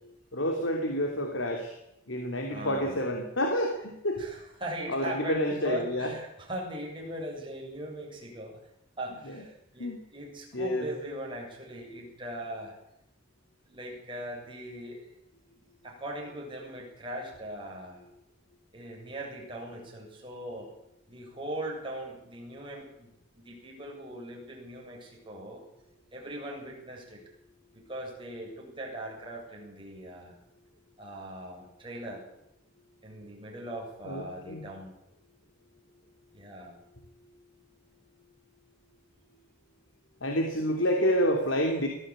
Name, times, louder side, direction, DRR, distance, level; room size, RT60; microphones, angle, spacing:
voice 1, 0.3-1.8 2.1-4.2 4.9-6.1 9.3-9.4 9.8-10.0 10.5-10.9 34.0-34.6 40.2-41.9, equal, 80° left, 4 dB, 3.0 m, -29 dB
voice 2, 2.5-3.0 4.2-8.6 9.0-12.8 13.7-15.0 15.8-18.1 18.7-20.7 21.1-25.6 26.1-27.2 27.7-30.4 31.0-32.2 33.0-34.9 36.3-36.8, right 1 dB, 25° right, -1 dB, 7.5 m, -40 dB
21.5 x 15.5 x 8.9 m, 0.83 s
head